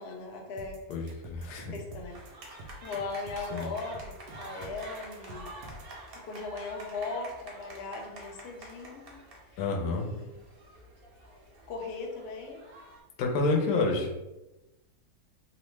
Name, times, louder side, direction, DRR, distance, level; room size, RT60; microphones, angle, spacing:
voice 1, 0.0-0.8 1.7-2.2 2.8-5.5 6.2-9.2 9.9-10.3 11.7-12.6, left 3 dB, 90° left, 1 dB, 0.5 m, -38 dB
sound 1, 0.6-5.9, right 2 dB, 85° right, 1.2 m, -47 dB
voice 2, 0.9-1.7 3.5-3.7 9.6-10.1 13.2-14.1, left 3 dB, 75° left, 1 dB, 1.1 m, -28 dB
sound 2, 2.1-13.0, right 1 dB, 60° right, 0.6 m, -48 dB
3.0 x 2.0 x 3.1 m, 1.0 s
omnidirectional pair, 1.7 m